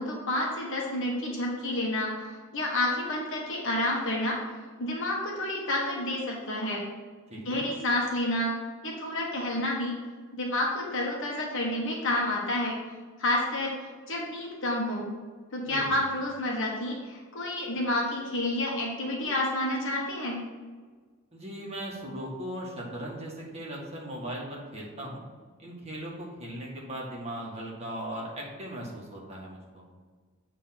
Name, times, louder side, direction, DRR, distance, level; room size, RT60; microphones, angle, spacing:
voice 1, 0.0-4.5 4.8-6.8 7.4-8.5 8.8-10.0 10.4-12.8 13.2-13.7 14.1-15.1 15.5-20.4, left 1 dB, 60° left, -2 dB, 1.4 m, -29 dB
voice 2, 7.3-7.6 15.7-16.0 21.3-25.2 25.6-29.8, right 1 dB, 30° right, -3 dB, 1.9 m, -38 dB
8.5 x 3.7 x 5.9 m, 1.5 s
head